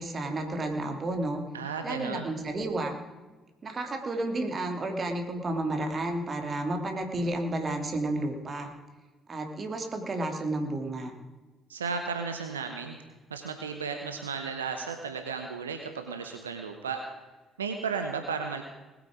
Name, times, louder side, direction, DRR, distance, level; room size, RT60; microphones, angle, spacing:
voice 1, 0.0-1.4 1.8-2.9 3.6-8.7 9.3-11.1, right 2 dB, 40° right, 4 dB, 2.7 m, -31 dB
voice 2, 1.5-2.3 11.7-12.9 13.3-17.0 17.6-18.6, right 5 dB, 90° right, 6 dB, 0.8 m, -34 dB
20.0 x 8.8 x 5.0 m, 1.2 s
hypercardioid pair, 45°, 0 cm